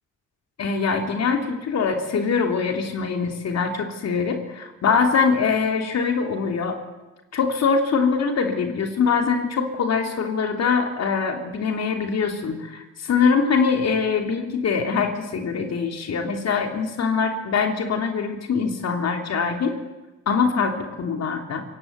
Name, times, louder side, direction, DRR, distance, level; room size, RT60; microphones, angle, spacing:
voice 1, 0.6-6.8 7.3-19.8 20.3-21.6, left 5 dB, 60° left, 4 dB, 3.1 m, -23 dB
23.5 x 17.5 x 9.4 m, 1.1 s
cardioid pair, 90°, 30 cm